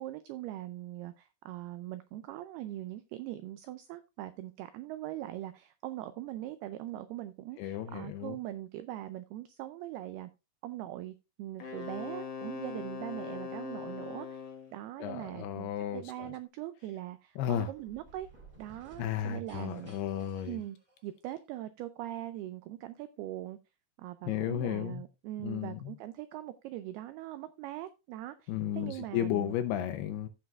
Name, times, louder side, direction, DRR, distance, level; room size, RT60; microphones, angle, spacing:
voice 1, 0.0-10.3 10.6-14.4 14.7-18.3 18.6-20.0 20.5-20.8 21.0-23.6 24.0-29.5, right 14 dB, 90° right, 2.2 m, -41 dB
voice 2, 7.6-8.4 15.0-16.3 17.4-17.7 19.0-20.6 24.3-25.0 25.4-25.9 28.5-30.3, left 10 dB, 80° left, 2.4 m, -34 dB
Wind instrument woodwind instrument, 11.6-14.8, left 6 dB, 60° left, 1.8 m, -41 dB
sound 1, 17.4-21.4, right 2 dB, 20° right, 1.3 m, -57 dB
16.0 x 6.1 x 2.4 m
omnidirectional pair, 5.2 m